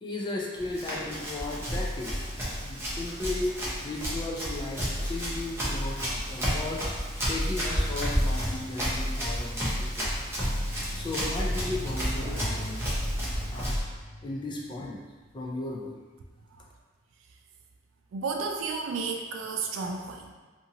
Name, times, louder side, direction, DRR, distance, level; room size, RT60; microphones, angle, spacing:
voice 1, 0.0-2.3 2.6-3.6 3.8-6.8 7.3-10.4 10.9-12.9 13.5-13.8 14.2-15.0 15.3-16.0, left 2 dB, 20° left, -2 dB, 0.3 m, -35 dB
Run, 0.6-13.8, equal, 10° right, 0.6 m, -31 dB
sound 1, 10.5-14.9 15.2-15.3, equal, 40° right, 0.9 m, -38 dB
voice 2, 18.1-20.3, right 4 dB, 65° right, 3 dB, 0.3 m, -32 dB
2.6 x 2.5 x 2.8 m, 1.3 s
head